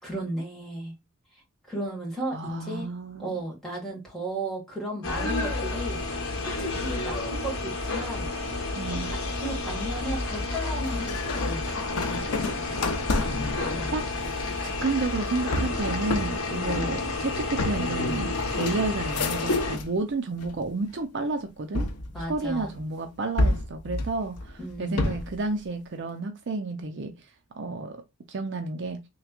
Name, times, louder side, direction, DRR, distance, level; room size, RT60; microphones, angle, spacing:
voice 1, 0.0-0.9 1.7-2.9 3.2-6.0 6.4-8.3 8.9-12.3 13.7-14.0 16.5-16.9 22.1-22.7 24.6-25.0, right 1 dB, ahead, 1.6 m, -35 dB
voice 2, 2.3-3.4 8.7-9.1 13.9-14.1 14.8-21.9 22.3-27.1 27.6-28.0 28.3-29.0, right 3 dB, 55° right, 0.5 m, -31 dB
sound 1, 5.0-19.8, left 2 dB, 70° left, 1.0 m, -30 dB
sound 2, 10.8-20.0 20.4-21.0 21.7-22.8 23.4-25.4, left 2 dB, 85° left, 0.6 m, -31 dB
3.3 x 3.1 x 2.3 m
head